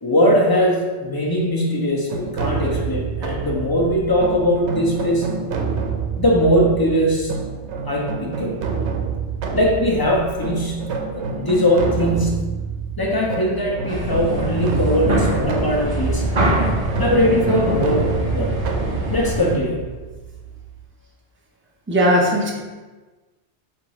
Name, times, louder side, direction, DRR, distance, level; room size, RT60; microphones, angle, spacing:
voice 1, 0.0-5.4 6.2-7.3 7.9-8.7 9.5-12.5 13.0-16.2 17.0-18.6 19.1-19.8, equal, 25° left, -3 dB, 0.7 m, -20 dB
sound 1, 2.1-20.8, right 5 dB, 80° right, 0.9 m, -28 dB
sound 2, 13.9-19.5, right 1 dB, 50° right, 0.8 m, -23 dB
voice 2, 21.9-22.5, equal, 15° right, -2 dB, 0.5 m, -17 dB
4.0 x 2.6 x 4.7 m, 1.3 s
omnidirectional pair, 1.1 m